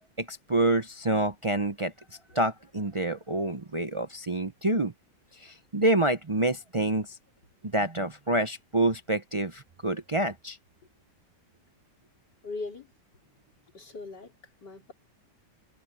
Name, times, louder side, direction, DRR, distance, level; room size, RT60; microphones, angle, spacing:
voice 1, 0.2-1.9 2.3-4.9 5.3-7.2 7.7-10.6, right 2 dB, 55° right, 0.3 m, -27 dB
voice 2, 12.4-12.9 13.7-14.9, left 3 dB, 70° left, 4.7 m, -40 dB
omnidirectional pair, 1.9 m